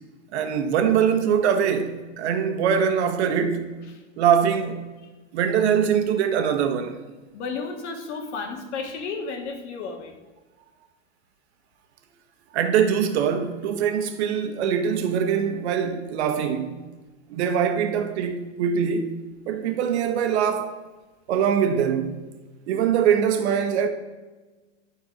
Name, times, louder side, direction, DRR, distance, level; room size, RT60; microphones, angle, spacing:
voice 1, 0.3-3.7 4.2-4.8 5.3-7.0 12.5-16.8 17.3-19.1 19.5-20.8 21.3-22.2 22.7-23.9, right 7 dB, 60° right, 1.3 m, -23 dB
voice 2, 7.3-10.1, left 4 dB, 65° left, 1.9 m, -32 dB
12.0 x 4.5 x 5.2 m
hypercardioid pair, 125°, 37 cm